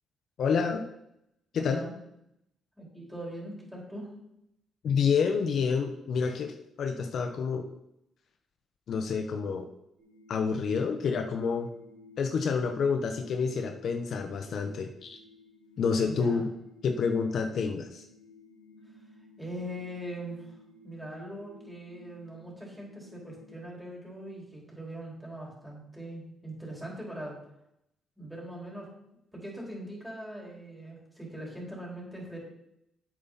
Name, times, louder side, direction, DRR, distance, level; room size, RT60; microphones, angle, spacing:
voice 1, 0.4-0.8 1.5-1.8 4.8-7.7 8.9-9.7 10.3-11.7 12.2-15.2 15.8-16.5 16.8-18.0, left 5 dB, 65° left, 6 dB, 0.9 m, -28 dB
voice 2, 1.6-1.9 2.8-4.1 16.0-16.5 19.4-20.6 20.8-27.4 28.2-28.9 29.3-32.4, right 1 dB, ahead, -3 dB, 4.2 m, -41 dB
sound 1, 10.0-23.6, left 1 dB, 70° right, 3.6 m, -55 dB
9.4 x 8.3 x 4.0 m, 0.80 s
cardioid pair, 90°, 0 cm